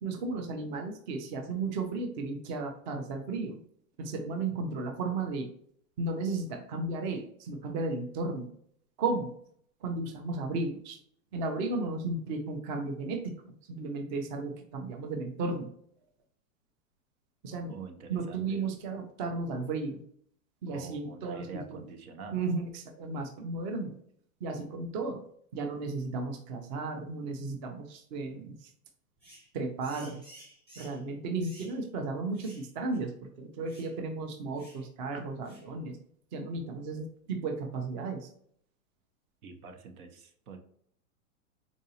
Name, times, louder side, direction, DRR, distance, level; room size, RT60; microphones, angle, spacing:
voice 1, 0.0-3.6 4.0-5.5 6.0-8.5 9.0-9.3 9.8-11.0 11.3-15.7 17.4-20.0 20.6-21.8 22.3-24.0 24.4-25.2 25.5-28.7 29.5-30.2 30.8-36.0 36.3-38.3, right 3 dB, 35° right, 4 dB, 0.5 m, -34 dB
voice 2, 17.5-18.7 20.7-22.4 39.4-40.6, right 4 dB, 85° right, 5 dB, 0.8 m, -46 dB
sound 1, 29.2-29.5 29.8-31.0 31.4-31.8 32.3-32.7 32.9-33.0 33.7-33.9 34.6-34.8 35.4-35.7, right 1 dB, 15° right, 1.1 m, -53 dB
3.9 x 2.6 x 2.8 m, 0.64 s
hypercardioid pair, 140°, 43 cm